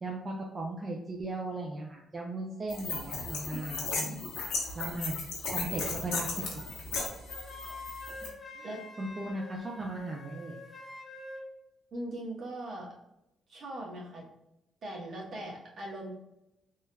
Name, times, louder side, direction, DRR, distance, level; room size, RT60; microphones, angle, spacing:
voice 1, 0.0-4.3 4.7-5.2 5.5-6.3 8.2-10.6, right 2 dB, 30° right, -2 dB, 0.5 m, -37 dB
sound 1, 2.7-8.3, left 4 dB, 85° left, 0.9 m, -36 dB
Wind instrument woodwind instrument, 7.3-11.5, left 2 dB, 30° left, 0.7 m, -46 dB
voice 2, 11.9-12.9 13.5-14.2 14.8-16.1, right 1 dB, 55° right, -3 dB, 1.2 m, -40 dB
3.6 x 2.7 x 2.2 m, 0.87 s
cardioid pair, 90°, 0 cm